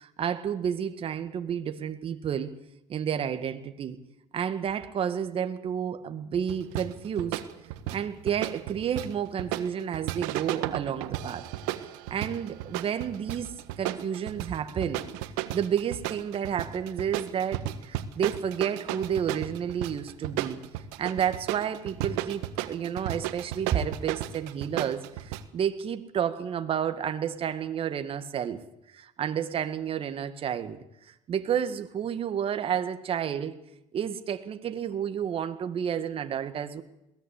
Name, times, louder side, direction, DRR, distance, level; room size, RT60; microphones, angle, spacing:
voice 1, 0.0-2.5 2.9-4.0 4.3-7.4 7.9-11.5 12.1-15.0 15.5-20.6 21.0-28.6 28.9-30.8 31.1-33.6 33.9-36.8, right 8 dB, 45° right, 1.9 m, -31 dB
sound 1, 6.5-25.4, right 14 dB, 90° right, 1.5 m, -34 dB
21.5 x 17.5 x 8.4 m
cardioid pair, 105°, 13 cm